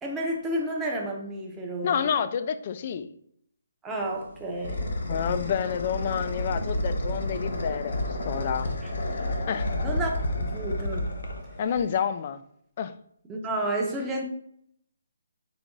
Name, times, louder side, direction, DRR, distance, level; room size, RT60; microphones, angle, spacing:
voice 1, 0.0-2.0 3.8-4.9 8.8-8.9 9.8-11.1 13.3-14.2, right 1 dB, 10° right, 0.7 m, -31 dB
voice 2, 1.8-3.1 5.1-8.7 9.5-9.7 11.6-12.4 12.8-13.0, left 8 dB, 40° left, 0.3 m, -29 dB
sound 1, 4.0-12.0, left 1 dB, 65° left, 0.8 m, -31 dB
4.0 x 2.8 x 3.6 m
figure-of-eight pair, 150°, 0 cm